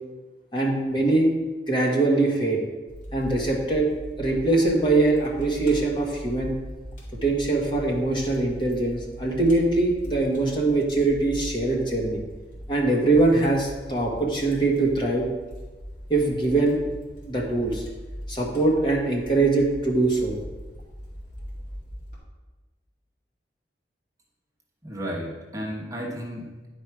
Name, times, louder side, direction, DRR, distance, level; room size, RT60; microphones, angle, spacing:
voice 1, 0.5-1.3 1.7-2.6 3.1-3.9 4.2-6.6 7.2-12.2 12.7-15.3 16.1-16.8 17.3-17.8 18.3-20.4, right 2 dB, 25° left, -1 dB, 1.4 m, -22 dB
Fire, 2.9-22.2, equal, 50° left, 2.6 m, -40 dB
voice 2, 24.8-26.7, equal, 20° right, -3 dB, 1.1 m, -33 dB
10.5 x 4.6 x 4.7 m, 1.2 s
head